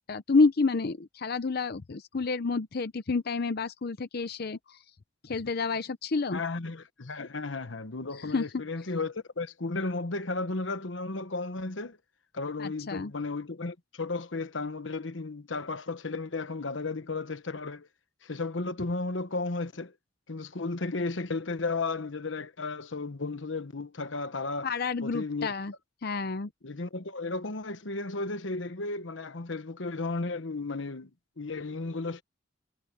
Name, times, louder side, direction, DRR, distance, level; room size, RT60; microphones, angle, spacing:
voice 1, 0.0-4.8 5.2-6.4 8.2-8.4 12.6-13.1 24.6-25.7 26.0-26.5, left 4 dB, 55° left, 0.6 m, -29 dB
voice 2, 6.3-12.0 12.3-17.9 18.2-19.9 20.3-24.7 25.0-25.5 26.6-31.1 31.4-32.2, left 3 dB, 90° left, 1.2 m, -34 dB
head